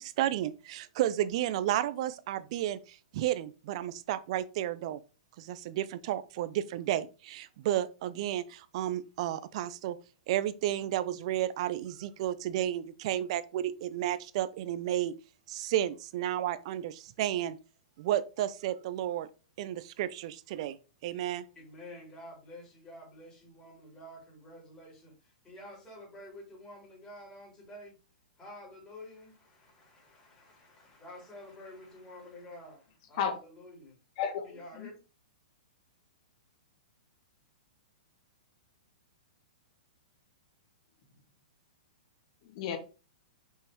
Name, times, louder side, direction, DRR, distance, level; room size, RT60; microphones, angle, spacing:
voice 1, 0.0-5.0 5.4-10.0 10.3-15.1 15.5-17.6 18.0-19.3 19.6-20.8 21.0-21.4, right 12 dB, 50° right, 0.6 m, -32 dB
voice 2, 21.6-28.0 28.4-34.0 34.4-34.9, left 1 dB, 15° left, 3.7 m, -49 dB
voice 3, 34.2-34.9 42.4-42.8, left 7 dB, 50° left, 1.7 m, -33 dB
5.8 x 5.6 x 3.1 m
hypercardioid pair, 115°, 4 cm